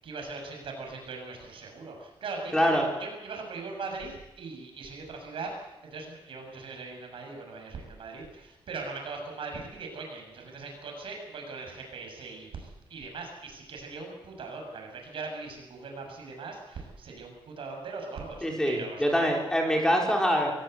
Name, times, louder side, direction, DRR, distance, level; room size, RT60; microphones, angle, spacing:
voice 1, 0.0-19.3, right 4 dB, 75° right, 2 dB, 7.1 m, -40 dB
voice 2, 2.5-2.9 18.4-20.5, equal, 5° left, 0 dB, 4.6 m, -24 dB
24.5 x 16.5 x 8.1 m, 0.93 s
wide cardioid pair, 150°, 9 cm